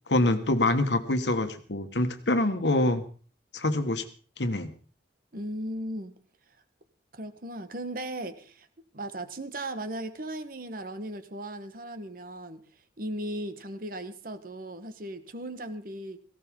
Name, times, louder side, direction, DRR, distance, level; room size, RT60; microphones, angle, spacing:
voice 1, 0.1-3.0 3.5-4.0 4.4-4.7, left 1 dB, 85° left, 9 dB, 1.5 m, -25 dB
voice 2, 5.3-6.1 7.1-8.7 8.9-12.6 13.0-16.2, right 1 dB, 55° right, 10 dB, 1.3 m, -37 dB
18.0 x 16.5 x 3.7 m, 0.39 s
head